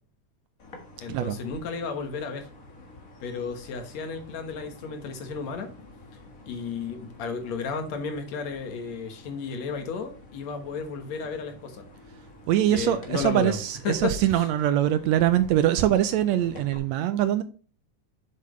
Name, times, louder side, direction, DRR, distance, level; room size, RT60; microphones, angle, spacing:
sound 1, 0.6-16.8, left 2 dB, 35° left, 1.5 m, -49 dB
voice 1, 1.0-2.5 3.2-5.7 6.5-11.8 12.7-13.6 13.8-14.5, left 5 dB, 70° left, 2.5 m, -33 dB
voice 2, 12.5-17.4, right 12 dB, 80° right, 1.7 m, -23 dB
7.6 x 7.4 x 3.1 m
omnidirectional pair, 3.4 m